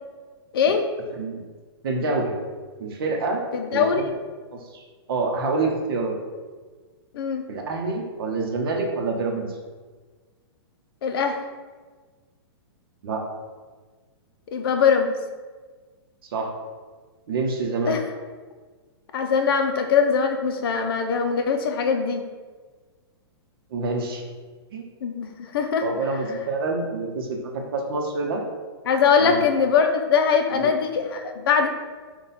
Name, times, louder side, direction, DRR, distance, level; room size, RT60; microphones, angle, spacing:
voice 1, 1.8-2.3 2.8-3.5 3.7-4.1 4.5-6.2 7.5-9.6 13.0-13.2 16.3-16.5 17.3-18.0 23.7-24.2 24.7-24.9 25.8-28.4 29.2-29.4 30.5-30.7, right 3 dB, 60° right, 2 dB, 0.7 m, -27 dB
voice 2, 3.5-4.0 7.1-7.4 11.0-11.4 14.5-15.1 17.9-18.0 19.1-22.2 25.0-25.8 28.9-31.7, left 6 dB, 60° left, 5 dB, 0.5 m, -21 dB
3.9 x 2.3 x 4.0 m, 1.4 s
hypercardioid pair, 155°, 14 cm